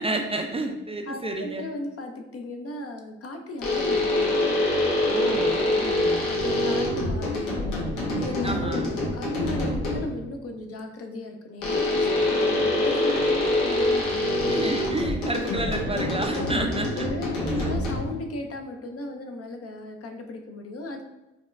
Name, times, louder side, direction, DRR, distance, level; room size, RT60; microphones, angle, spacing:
voice 1, 0.0-1.7 5.0-6.3 8.4-8.9 14.5-17.7, right 2 dB, 20° right, 3 dB, 0.4 m, -31 dB
voice 2, 1.1-4.6 5.4-5.8 6.3-7.6 8.2-14.5 15.9-16.6 16.9-21.0, left 2 dB, 50° left, 4 dB, 0.6 m, -36 dB
sound 1, 3.6-10.2 11.6-18.3, left 1 dB, 80° left, 0.8 m, -25 dB
4.1 x 2.2 x 2.5 m, 1.0 s
supercardioid pair, 50°, 31 cm